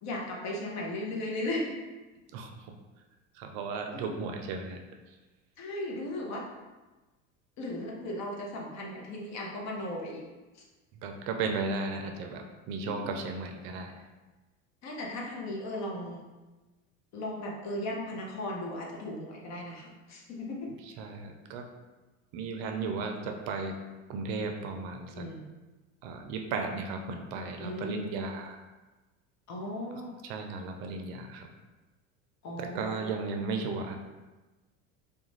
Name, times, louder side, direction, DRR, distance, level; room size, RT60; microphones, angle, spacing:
voice 1, 0.0-1.8 3.9-4.0 5.6-6.4 7.6-10.2 10.5-10.6 12.8-13.1 14.8-16.2 17.1-20.7 25.1-25.5 27.6-28.1 29.5-30.1 32.4-33.0, left 1 dB, 45° left, -1 dB, 0.7 m, -36 dB
voice 2, 2.3-2.8 3.3-4.8 11.0-14.1 21.0-21.7 22.3-23.8 24.1-25.3 26.0-28.6 30.2-31.5 32.6-34.0, right 4 dB, 60° right, 4 dB, 0.5 m, -35 dB
2.4 x 2.2 x 3.0 m, 1.2 s
hypercardioid pair, 90°, 40 cm